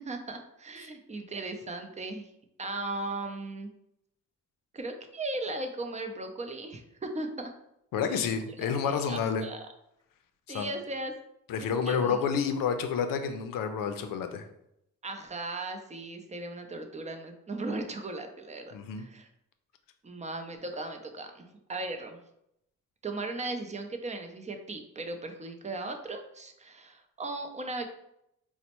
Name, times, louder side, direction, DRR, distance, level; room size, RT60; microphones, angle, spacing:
voice 1, 0.1-2.3 2.6-3.7 4.7-7.5 8.6-9.6 10.5-11.1 11.9-12.1 15.0-19.3 20.0-22.2 23.0-27.9, right 2 dB, 20° right, 5 dB, 0.5 m, -37 dB
voice 2, 7.9-9.5 10.5-10.7 11.5-14.5 18.7-19.1, left 6 dB, 90° left, 8 dB, 0.5 m, -29 dB
4.0 x 2.1 x 2.9 m, 0.79 s
cardioid pair, 75°, 32 cm